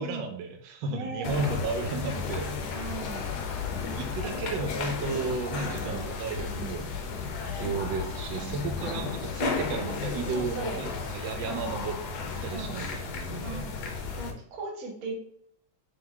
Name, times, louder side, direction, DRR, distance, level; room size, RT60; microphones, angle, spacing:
voice 1, 0.0-2.5 4.0-7.0 7.5-11.9 12.4-13.7, right 4 dB, 75° right, 4 dB, 1.2 m, -33 dB
voice 2, 0.9-1.5 2.7-3.3 5.5-6.1 6.5-7.0 8.4-8.8 10.3-10.8 11.4-11.7 12.5-12.8 13.4-13.7 14.2-15.1, right 3 dB, 55° right, 1 dB, 1.1 m, -39 dB
sound 1, 1.2-14.3, left 5 dB, 70° left, 0.9 m, -34 dB
3.5 x 3.4 x 3.6 m, 0.67 s
omnidirectional pair, 2.3 m